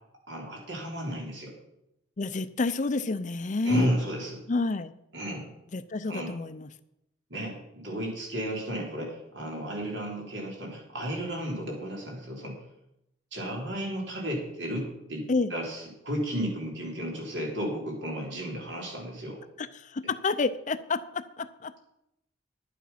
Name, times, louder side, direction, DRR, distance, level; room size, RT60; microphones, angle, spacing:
voice 1, 0.3-1.5 3.6-4.4 5.1-5.5 6.1-6.3 7.3-12.6 13.3-19.4, equal, 70° right, -1 dB, 3.9 m, -33 dB
voice 2, 2.2-3.9 4.5-4.9 5.7-6.7 15.3-15.5 19.6-21.7, left 3 dB, 40° left, 13 dB, 0.5 m, -29 dB
11.0 x 8.6 x 5.7 m, 0.82 s
head